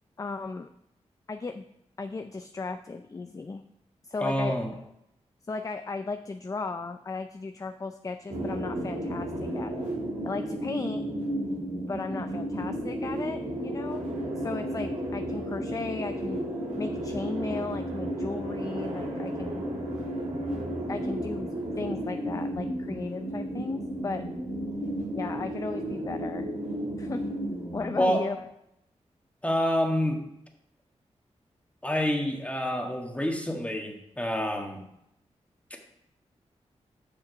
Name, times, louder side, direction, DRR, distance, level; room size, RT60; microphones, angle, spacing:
voice 1, 0.2-0.7 1.3-1.7 2.0-3.6 4.0-4.8 5.5-9.9 10.2-11.0 11.9-14.1 14.4-16.4 16.8-19.6 20.9-21.5 21.8-24.2 25.2-26.5 27.0-27.2 27.7-28.4, left 3 dB, 30° left, 8 dB, 0.4 m, -35 dB
voice 2, 4.2-4.7 28.0-28.2 29.4-30.2 31.8-34.8, equal, 10° left, 2 dB, 1.5 m, -27 dB
sound 1, 8.3-28.1, right 1 dB, 90° right, 2.1 m, -33 dB
6.8 x 5.8 x 5.1 m, 0.80 s
cardioid pair, 60°, 12 cm